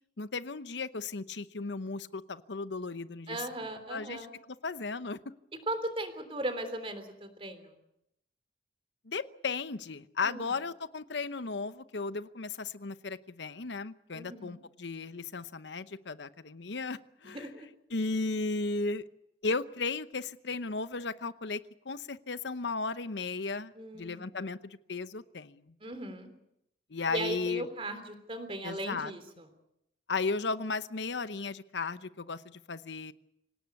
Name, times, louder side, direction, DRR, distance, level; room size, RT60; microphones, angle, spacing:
voice 1, 0.2-5.2 9.1-17.5 17.9-19.0 19.4-25.7 26.9-27.7 28.6-29.1 30.1-33.1, left 4 dB, 75° left, 14 dB, 0.9 m, -35 dB
voice 2, 3.3-4.3 5.7-7.7 10.2-10.5 14.1-14.6 17.2-17.7 23.7-24.3 25.8-26.3 27.1-29.5, right 1 dB, 30° right, 9 dB, 3.4 m, -37 dB
25.5 x 18.0 x 8.4 m, 0.81 s
head